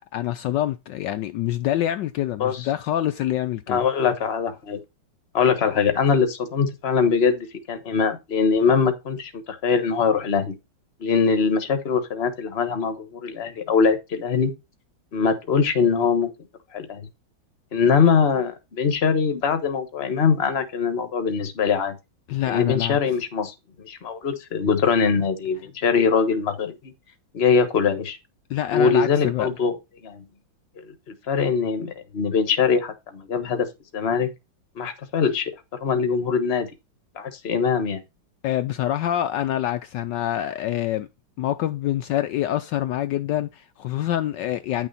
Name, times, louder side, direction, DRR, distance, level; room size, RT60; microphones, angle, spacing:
voice 1, 0.1-3.8 22.3-23.0 28.5-29.5 38.4-41.1 41.4-44.9, left 12 dB, 75° left, 1.2 m, -26 dB
voice 2, 3.7-4.8 5.3-10.5 11.0-14.5 15.1-16.3 16.7-17.1 17.7-22.0 22.5-26.9 27.3-28.2 28.7-29.8 30.0-30.2 30.8-33.7 33.9-34.3 34.8-35.5 35.8-36.7 37.1-38.0, left 6 dB, 35° left, 1.3 m, -22 dB
9.9 x 6.3 x 4.1 m
omnidirectional pair, 2.1 m